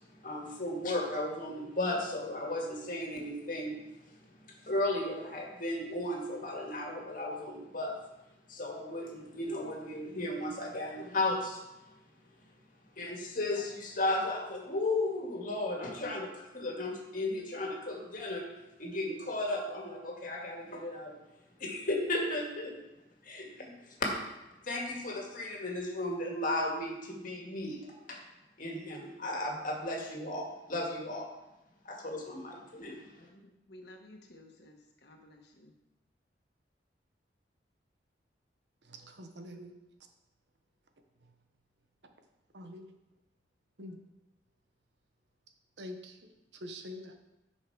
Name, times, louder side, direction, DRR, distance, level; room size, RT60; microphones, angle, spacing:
voice 1, 0.2-3.7 4.6-7.9 8.5-11.6 13.0-18.4 18.8-21.1 21.6-22.7 23.2-24.1 24.6-27.8 28.1-28.2 28.6-31.3 31.9-33.0, left 2 dB, 50° left, 0 dB, 1.9 m, -35 dB
voice 2, 33.2-35.7, left 1 dB, 65° left, 2 dB, 1.4 m, -55 dB
voice 3, 38.9-39.7 42.5-42.9 43.8-44.0 45.8-46.3 46.6-47.1, left 1 dB, 70° right, 5 dB, 1.0 m, -45 dB
10.0 x 5.6 x 4.7 m, 0.95 s
head